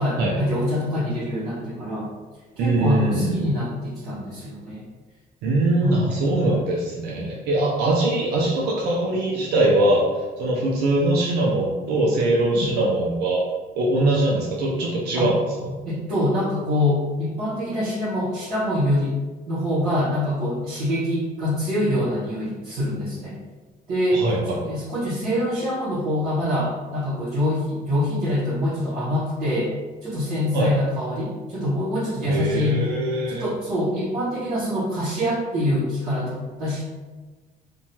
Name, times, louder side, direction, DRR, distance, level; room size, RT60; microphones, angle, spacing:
voice 1, 0.0-2.1 2.6-4.8 5.8-6.0 12.5-12.7 15.1-15.3 15.8-19.1 19.5-23.4 23.9-29.7 30.0-32.8 33.3-36.8, left 1 dB, 60° right, -12 dB, 1.2 m, -25 dB
voice 2, 2.6-3.4 5.4-10.1 10.4-13.4 13.8-15.4 24.1-24.6 30.5-30.7 32.3-33.4, right 1 dB, 80° right, -3 dB, 0.5 m, -22 dB
2.7 x 2.2 x 2.8 m, 1.3 s
cardioid pair, 110°, 17 cm